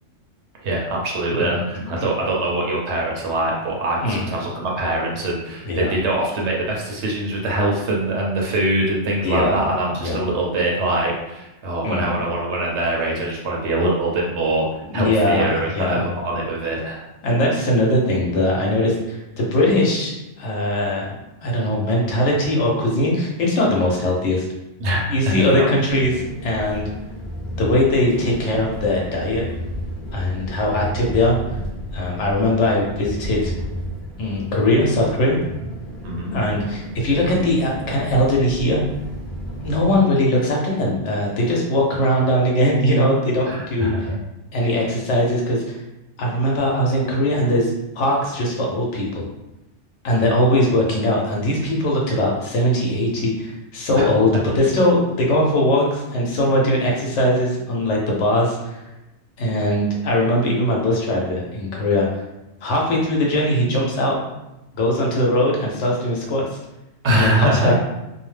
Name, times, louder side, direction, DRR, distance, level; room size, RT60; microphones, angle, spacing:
voice 1, 0.6-17.1 24.8-25.7 36.0-36.3 43.5-44.2 53.9-54.0 67.0-67.7, right 1 dB, 65° right, -2 dB, 0.8 m, -23 dB
voice 2, 9.2-9.6 10.0-10.2 11.8-12.1 14.9-16.1 17.2-21.1 21.4-24.4 25.1-26.9 27.6-29.5 30.1-31.4 31.9-33.5 34.2-35.4 36.3-38.8 39.6-44.1 44.5-45.8 46.2-49.3 50.0-58.8 59.4-62.2 62.6-64.2 64.7-66.6 67.1-67.7, left 1 dB, 65° left, -2 dB, 0.9 m, -20 dB
sound 1, 25.9-40.0, equal, ahead, 0.4 m, -32 dB
2.5 x 2.1 x 3.2 m, 0.97 s
omnidirectional pair, 1.3 m